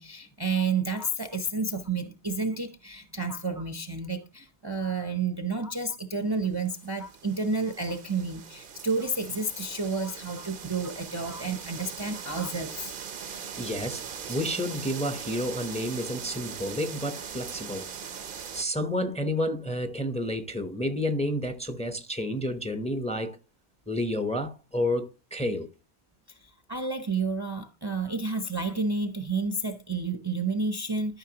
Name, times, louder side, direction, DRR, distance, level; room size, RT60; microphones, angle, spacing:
voice 1, 0.0-12.9 26.3-31.2, right 3 dB, 25° right, 0.7 m, -30 dB
sound 1, 6.6-18.6, right 7 dB, 55° right, 0.9 m, -40 dB
voice 2, 13.3-14.0 14.3-18.2 18.5-23.4 23.9-25.7, left 1 dB, 5° left, 0.8 m, -30 dB
13.0 x 5.6 x 2.9 m
omnidirectional pair, 1.1 m